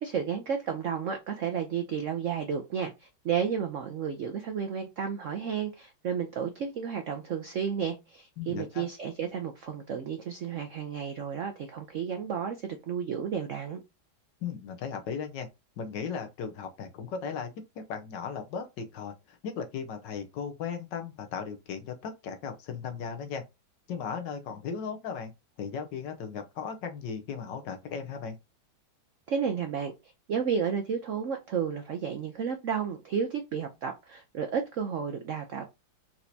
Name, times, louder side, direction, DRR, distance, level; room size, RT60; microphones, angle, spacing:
voice 1, 0.0-13.8 29.3-29.9 30.3-35.6, right 7 dB, 75° right, 0.7 m, -32 dB
voice 2, 8.4-8.8 14.4-15.5 15.8-23.4 23.9-25.3 25.6-28.4, left 6 dB, 70° left, 1.4 m, -37 dB
4.5 x 4.2 x 2.7 m
omnidirectional pair, 2.1 m